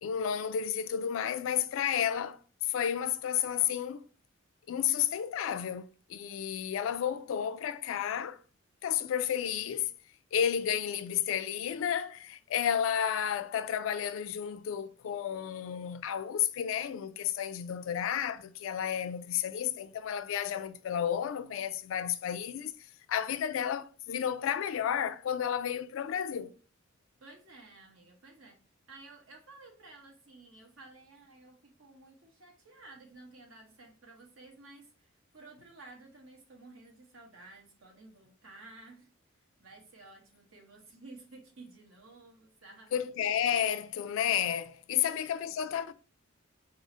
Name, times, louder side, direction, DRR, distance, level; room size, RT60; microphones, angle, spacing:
voice 1, 0.0-4.0 4.7-8.4 8.8-9.9 10.3-22.7 23.1-26.5 42.9-45.9, left 9 dB, 70° left, 0.3 m, -32 dB
voice 2, 27.2-28.6 28.9-39.1 39.6-43.1 45.0-45.2, right 2 dB, 85° right, 1.0 m, -53 dB
4.7 x 2.0 x 2.6 m
head